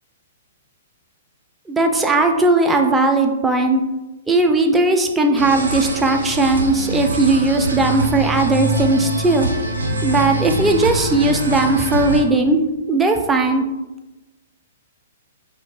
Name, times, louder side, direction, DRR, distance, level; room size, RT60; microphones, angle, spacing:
voice 1, 1.7-3.8 4.3-9.5 10.0-12.6 12.9-13.7, right 2 dB, 10° right, 4 dB, 0.3 m, -17 dB
sound 1, 5.4-12.2, right 1 dB, 70° right, 0.5 m, -24 dB
3.7 x 2.1 x 2.7 m, 1.1 s
figure-of-eight pair, 115°, 0 cm